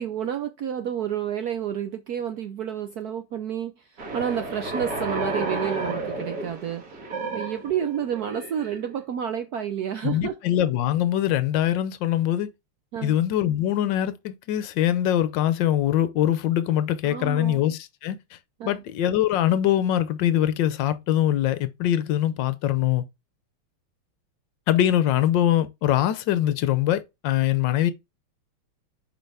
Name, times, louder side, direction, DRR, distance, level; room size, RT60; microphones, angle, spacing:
voice 1, 0.0-6.9 7.3-10.4 12.9-13.2 17.0-17.6 18.6-18.8, right 9 dB, 75° right, 0.8 m, -30 dB
sound 1, 4.0-9.0, right 2 dB, 45° right, 2.0 m, -32 dB
voice 2, 10.0-12.5 13.0-18.4 18.7-23.0 24.7-27.9, left 12 dB, 65° left, 1.2 m, -23 dB
6.5 x 5.1 x 3.4 m
omnidirectional pair, 2.4 m